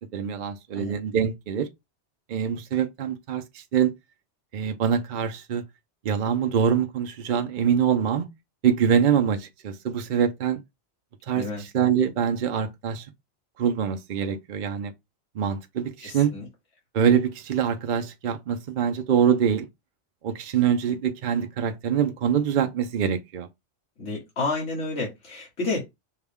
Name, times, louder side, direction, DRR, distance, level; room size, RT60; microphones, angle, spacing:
voice 1, 0.1-1.7 2.3-3.9 4.5-5.6 6.0-8.3 8.6-10.6 11.3-13.1 13.6-14.9 15.4-16.3 16.9-19.7 20.2-23.5, right 8 dB, 55° right, 0.6 m, -24 dB
voice 2, 16.0-16.4 24.0-25.8, left 3 dB, 80° left, 2.0 m, -30 dB
5.5 x 2.2 x 3.4 m
omnidirectional pair, 1.2 m